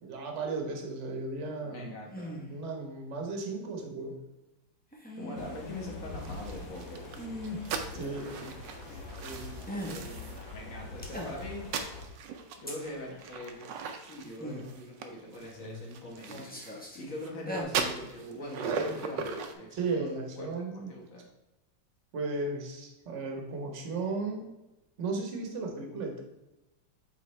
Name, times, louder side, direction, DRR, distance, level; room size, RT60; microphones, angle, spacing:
voice 1, 0.0-1.8 2.5-4.1 7.6-8.3 19.7-20.9 22.1-24.5 25.0-26.2, right 3 dB, 45° right, 2 dB, 1.2 m, -35 dB
voice 2, 1.6-2.4 3.9-4.1 5.1-7.1 7.9-11.7 12.6-13.7 14.0-20.5 20.7-21.2, left 1 dB, 50° left, -1 dB, 1.7 m, -43 dB
sound 1, 2.1-2.6 4.9-5.5 7.2-7.7 9.7-10.1 11.0-11.6 12.7-12.8 14.4-14.7 15.4-15.9 16.3-17.0 17.3-17.6, left 1 dB, 10° left, 0.5 m, -40 dB
sound 2, 5.3-12.1, left 3 dB, 65° left, 1.7 m, -44 dB
sound 3, 6.2-10.5 11.0-17.3 17.7-19.5, right 5 dB, 75° right, 1.3 m, -38 dB
8.4 x 3.7 x 3.2 m, 0.98 s
omnidirectional pair, 2.0 m